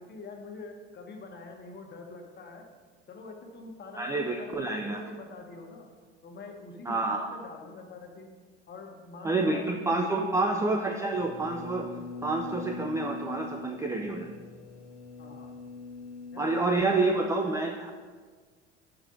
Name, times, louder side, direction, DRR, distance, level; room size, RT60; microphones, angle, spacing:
voice 1, 0.0-2.7 3.1-5.9 6.2-8.3 8.7-11.0 15.2-15.5 16.3-17.6, left 3 dB, 30° left, 2 dB, 1.2 m, -44 dB
voice 2, 4.0-5.0 6.9-7.3 9.2-14.3 16.4-17.9, right 2 dB, 10° right, 2 dB, 0.4 m, -28 dB
sound 1, 11.1-16.6, left 4 dB, 85° left, 0.6 m, -42 dB
5.8 x 4.8 x 5.3 m, 1.5 s
hypercardioid pair, 75°, 34 cm